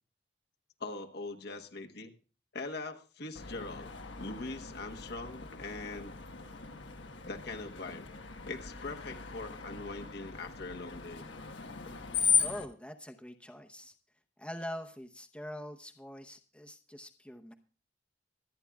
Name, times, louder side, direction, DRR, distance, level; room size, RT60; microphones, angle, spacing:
voice 1, 0.8-2.1 2.5-3.9 4.2-6.2 7.2-11.2, left 3 dB, 60° left, 4 dB, 1.1 m, -42 dB
Screech, 3.3-12.7, left 6 dB, 90° left, 1.3 m, -37 dB
voice 2, 12.1-13.9 14.4-17.5, equal, 5° left, 4 dB, 0.8 m, -44 dB
25.5 x 9.8 x 2.3 m, 0.36 s
head